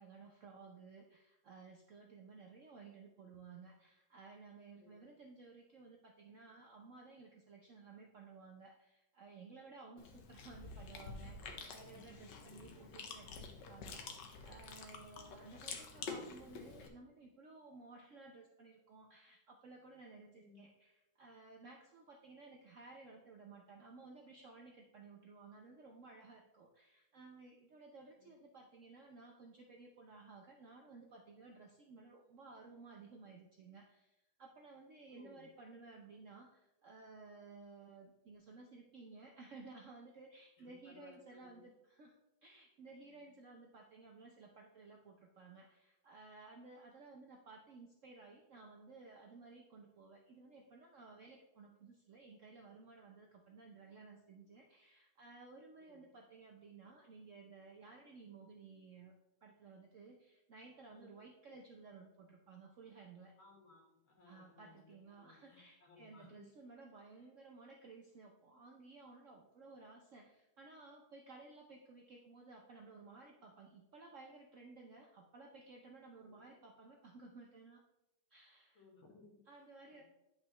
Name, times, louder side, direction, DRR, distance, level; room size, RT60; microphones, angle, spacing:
voice 1, 0.0-59.1 59.4-63.3 64.2-77.8 78.3-78.8 79.5-80.0, right 3 dB, 70° right, 1 dB, 0.7 m, -56 dB
voice 2, 4.7-5.1 11.9-12.1 12.4-12.8 20.3-20.7 28.2-28.4 35.1-35.5 40.6-41.7 43.0-43.3 55.8-56.1 60.9-61.1 63.4-66.5 76.2-76.5 78.7-80.0, left 4 dB, 85° left, -1 dB, 2.5 m, -63 dB
Chewing mastication, 10.0-16.9, left 4 dB, 65° left, 1.4 m, -49 dB
9.8 x 5.4 x 3.0 m, 0.92 s
omnidirectional pair, 2.2 m